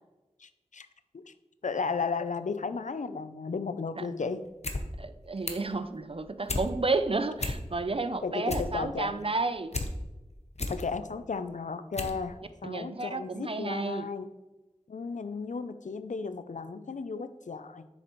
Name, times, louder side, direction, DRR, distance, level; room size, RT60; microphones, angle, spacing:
voice 1, 0.4-0.9 1.1-1.3 1.6-4.5 8.2-9.1 10.7-14.3 14.9-17.9, left 4 dB, 90° left, 11 dB, 0.4 m, -34 dB
sound 1, 4.5-4.8 5.1-5.7 6.1-6.7 7.1-7.2 7.4-7.9 8.3-9.9 10.3-10.8 11.4-11.5 11.9-12.2 12.5-12.6, left 2 dB, 60° left, 0.8 m, -33 dB
voice 2, 5.0-9.8 12.6-14.1, right 3 dB, 50° right, 10 dB, 0.5 m, -31 dB
7.6 x 6.4 x 3.0 m, 1.1 s
wide cardioid pair, 45°, 12 cm